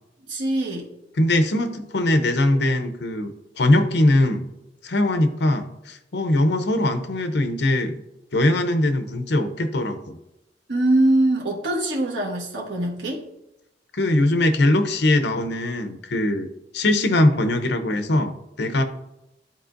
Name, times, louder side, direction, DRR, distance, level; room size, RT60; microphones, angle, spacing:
voice 1, 0.3-0.9 10.7-13.2, right 1 dB, 75° right, -2 dB, 1.3 m, -22 dB
voice 2, 1.2-4.4 4.8-8.0 8.3-10.2 13.9-16.5 16.7-18.8, left 1 dB, 65° left, 8 dB, 0.7 m, -21 dB
12.0 x 4.4 x 2.6 m, 0.90 s
head